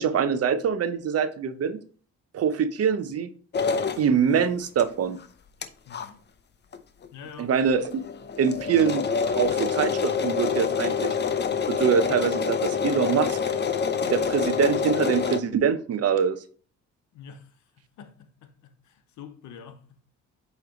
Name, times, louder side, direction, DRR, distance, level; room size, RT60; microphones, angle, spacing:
voice 1, 0.0-1.8 2.3-3.3 4.0-5.2 7.4-8.0 8.4-11.1 11.7-13.4 14.1-16.4, right 7 dB, 55° right, 0.7 m, -24 dB
sound 1, 3.5-4.0 4.8-4.9 5.2-5.3 5.6-5.7 5.9-6.1 6.7-6.8 7.0-7.1 7.5-7.6 7.9-15.4, left 6 dB, 35° left, 0.6 m, -26 dB
voice 2, 5.9-6.2 7.1-7.5 17.1-17.5 17.8-20.0, left 7 dB, 75° left, 0.9 m, -46 dB
8.1 x 3.2 x 3.8 m
cardioid pair, 90°, 30 cm